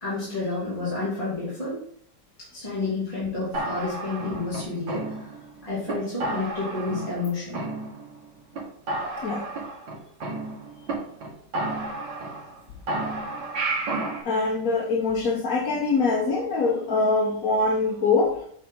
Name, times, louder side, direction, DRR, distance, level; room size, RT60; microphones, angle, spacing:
voice 1, 0.0-1.8 2.4-5.4 5.6-7.6, left 3 dB, 20° left, -10 dB, 3.1 m, -30 dB
sound 1, 3.5-5.5 5.9-6.0 6.2-7.2 7.5-8.2 8.5-8.6 8.9-10.9 11.2-11.3 11.5-12.6 12.9-14.2, right 2 dB, 80° right, 2.2 m, -31 dB
voice 2, 14.2-18.3, left 3 dB, 50° left, -3 dB, 1.6 m, -23 dB
8.2 x 4.3 x 3.9 m, 0.64 s
omnidirectional pair, 2.0 m